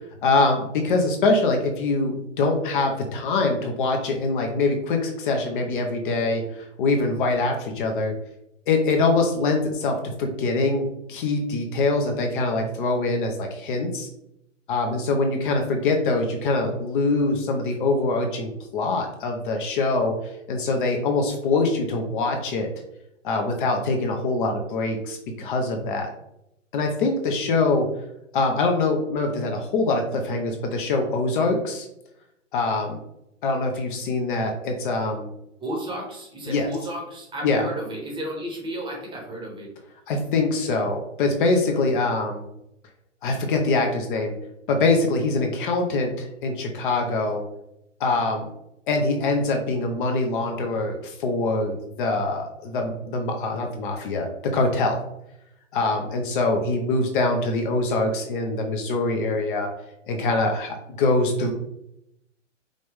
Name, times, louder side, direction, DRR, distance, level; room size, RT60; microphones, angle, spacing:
voice 1, 0.2-8.1 8.7-14.1 14.7-20.1 20.5-22.7 23.2-26.1 26.7-27.9 28.3-31.9 32.5-33.0 33.4-35.3 36.5-36.7 37.4-37.6 40.1-42.4 43.2-44.3 44.7-47.4 48.0-48.5 48.9-55.0 55.7-59.7 60.1-61.5, left 3 dB, 40° left, 3 dB, 0.8 m, -24 dB
voice 2, 35.6-39.7, right 1 dB, 15° right, -1 dB, 1.0 m, -33 dB
5.1 x 2.5 x 3.4 m, 0.81 s
figure-of-eight pair, 120°, 38 cm